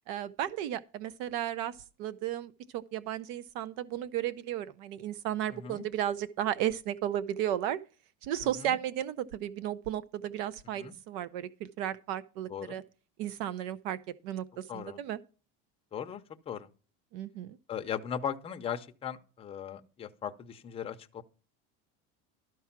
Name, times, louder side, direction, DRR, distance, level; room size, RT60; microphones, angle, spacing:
voice 1, 0.1-7.8 8.2-12.8 13.2-14.0 14.2-15.2 17.1-17.6, right 11 dB, 70° right, 0.7 m, -34 dB
voice 2, 5.5-5.9 8.6-8.8 10.8-10.9 12.5-12.8 14.7-15.0 15.9-16.7 17.7-21.2, left 8 dB, 20° left, 0.7 m, -38 dB
12.5 x 4.7 x 5.8 m
cardioid pair, 165°, 29 cm